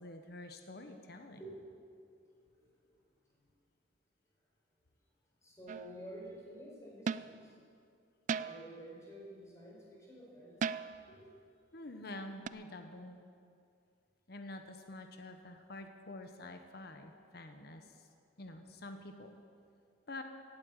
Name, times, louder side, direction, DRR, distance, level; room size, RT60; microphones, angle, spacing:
voice 1, 0.0-1.4 11.7-13.2 14.3-18.1 18.4-19.3 20.1-20.2, left 2 dB, 60° left, 6 dB, 1.0 m, -48 dB
voice 2, 2.5-3.0 5.4-7.6 8.3-10.7 11.1-11.3, right 1 dB, 20° left, -4 dB, 4.6 m, -51 dB
sound 1, 5.7-6.0 7.1-7.4 8.3-8.8 10.6-11.1 12.5-12.6, right 6 dB, 45° right, 0.3 m, -37 dB
16.5 x 8.7 x 8.1 m, 2.4 s
head